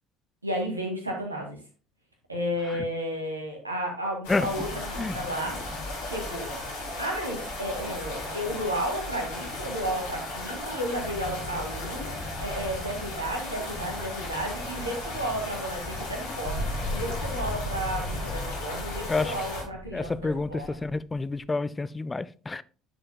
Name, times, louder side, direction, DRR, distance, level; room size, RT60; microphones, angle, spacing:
voice 1, 0.4-1.6 2.3-5.6 6.0-6.5 7.0-20.8, equal, 90° right, 2.0 m, -33 dB
sound 1, 4.2-19.6, left 2 dB, 70° left, 3.8 m, -35 dB
sound 2, 16.4-21.3, left 1 dB, 35° left, 2.8 m, -36 dB
voice 2, 19.9-22.6, left 3 dB, 20° left, 0.5 m, -29 dB
10.0 x 6.7 x 2.2 m
figure-of-eight pair, 60°, 0 cm